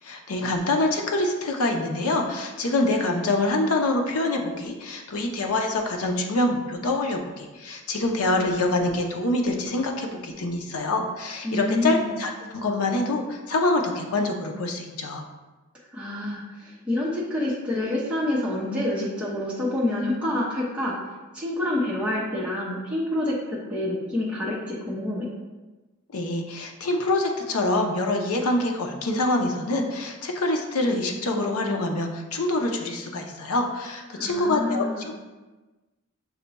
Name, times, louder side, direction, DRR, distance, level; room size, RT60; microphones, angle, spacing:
voice 1, 0.0-15.2 26.1-35.1, left 2 dB, 80° left, 3 dB, 0.6 m, -25 dB
voice 2, 11.4-12.1 15.9-20.9 21.3-25.3 34.2-35.1, left 1 dB, 5° right, -7 dB, 0.7 m, -27 dB
5.6 x 2.2 x 4.0 m, 1.2 s
head